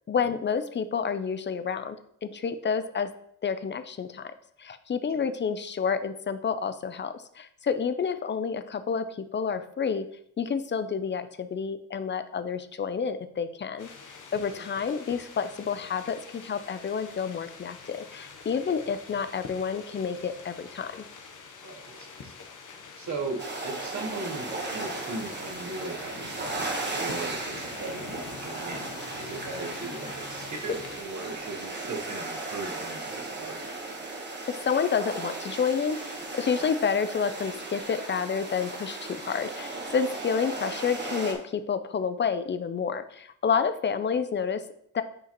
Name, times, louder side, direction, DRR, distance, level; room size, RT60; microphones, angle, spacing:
voice 1, 0.1-2.0 2.2-3.1 3.4-4.3 4.6-10.1 10.4-13.9 14.3-21.1 34.5-44.6 44.9-45.0, left 6 dB, 35° left, 10 dB, 0.5 m, -29 dB
sound 1, 13.8-31.0, left 5 dB, 70° left, 0.9 m, -44 dB
voice 2, 21.6-22.3 23.0-28.9 29.1-33.6, right 3 dB, 65° right, 3 dB, 1.0 m, -38 dB
sound 2, 23.4-41.3, right 2 dB, 35° right, 1.1 m, -36 dB
8.9 x 4.8 x 3.0 m, 0.68 s
wide cardioid pair, 170°, 32 cm